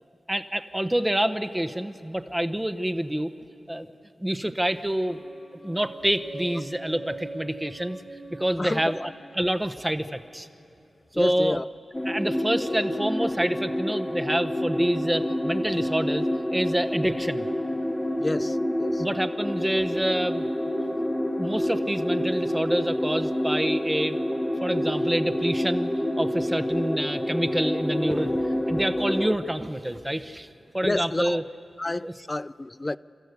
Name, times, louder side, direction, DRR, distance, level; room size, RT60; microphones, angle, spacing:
voice 1, 0.3-3.3 3.7-3.9 4.2-5.2 5.6-8.0 8.4-10.5 11.2-11.6 12.1-16.3 16.5-17.5 19.0-20.5 21.4-24.2 24.6-25.9 26.2-28.3 28.7-30.5 30.7-31.4 32.0-32.1, right 1 dB, 15° right, 0.9 m, -27 dB
sound 1, 5.1-10.9, right 2 dB, 75° right, 4.3 m, -43 dB
voice 2, 8.6-9.1 11.1-11.6 18.2-19.0 30.8-31.4 31.8-33.0, left 2 dB, 30° left, 0.4 m, -30 dB
sound 2, 11.9-29.3, left 1 dB, 15° left, 1.2 m, -28 dB
29.0 x 14.0 x 8.1 m
cardioid pair, 55°, 0 cm